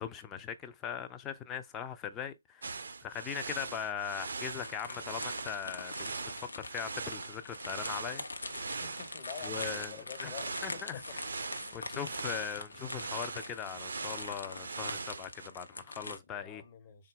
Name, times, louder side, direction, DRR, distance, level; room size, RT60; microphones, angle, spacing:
voice 1, 0.0-8.2 9.4-9.9 10.2-10.3 10.6-11.0 11.7-16.6, left 8 dB, 15° left, 0.4 m, -40 dB
sound 1, 2.6-15.5, right 4 dB, 55° right, 0.4 m, -41 dB
sound 2, 4.4-16.2, left 3 dB, 65° left, 0.6 m, -44 dB
voice 2, 8.8-11.2 11.6-11.9 16.3-17.1, left 7 dB, 30° left, 0.8 m, -48 dB
3.8 x 2.1 x 3.7 m
figure-of-eight pair, 140°, 0 cm